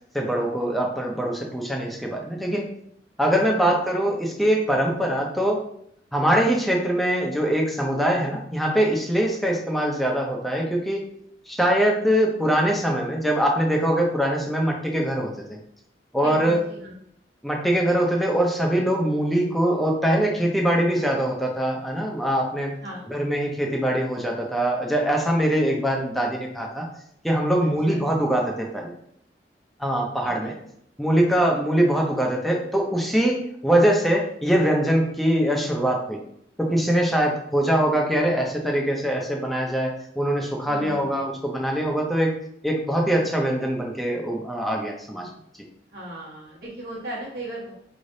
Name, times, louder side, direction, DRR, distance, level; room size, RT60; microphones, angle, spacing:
voice 1, 0.1-2.7 3.2-5.7 6.1-11.0 11.5-15.6 16.1-16.6 17.4-22.7 23.1-26.9 27.2-28.9 29.8-30.6 31.0-36.2 36.6-42.4 42.6-45.3, right 1 dB, ahead, -1 dB, 0.6 m, -23 dB
voice 2, 16.2-16.9 22.8-23.1 27.9-28.0 30.2-30.5 37.3-37.4 40.6-41.3 45.9-47.7, right 1 dB, 55° right, -7 dB, 1.2 m, -37 dB
4.7 x 3.3 x 2.7 m, 0.70 s
head